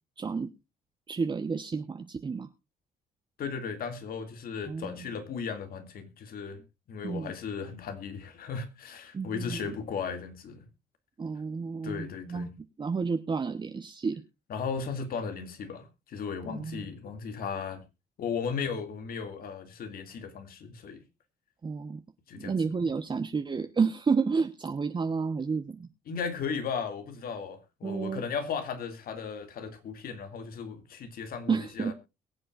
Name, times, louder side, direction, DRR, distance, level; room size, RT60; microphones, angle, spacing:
voice 1, 0.2-0.5 1.1-2.5 4.7-5.0 7.0-7.3 9.1-9.8 11.2-12.5 12.8-14.2 16.5-16.8 21.6-22.0 22.4-25.9 27.8-28.2 31.5-31.9, right 5 dB, 30° right, 1.0 m, -30 dB
voice 2, 3.4-10.6 11.8-12.5 14.5-17.8 18.2-21.0 22.3-22.5 22.8-22.9 26.1-31.9, left 6 dB, 65° left, 2.3 m, -36 dB
22.5 x 7.7 x 2.5 m
cardioid pair, 95°, 16 cm